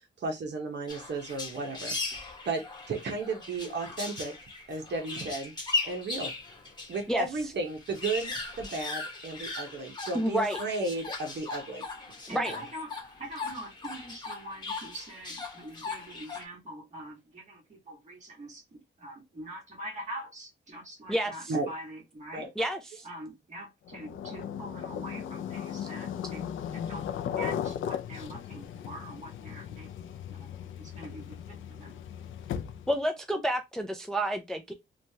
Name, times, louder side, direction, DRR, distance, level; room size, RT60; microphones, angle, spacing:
voice 1, 0.2-4.3 4.7-5.5 5.8-6.3 6.9-11.8 12.3-12.6 21.5-21.7 22.3-22.5, right 3 dB, 60° right, 0.8 m, -34 dB
sound 1, 0.9-7.1 7.4-7.5 7.7-16.4, left 3 dB, 20° left, 1.0 m, -38 dB
voice 2, 10.1-10.6 12.3-12.5 21.1-21.5 22.6-23.1 32.9-34.7, equal, 5° left, 0.4 m, -29 dB
voice 3, 12.3-12.9 13.2-18.6 19.0-22.5 23.0-29.9 30.3-30.5 30.8-31.9, right 1 dB, 35° right, 1.5 m, -44 dB
sound 2, 23.9-33.0, left 9 dB, 80° left, 0.4 m, -37 dB
3.1 x 2.3 x 2.7 m
wide cardioid pair, 120°, 20 cm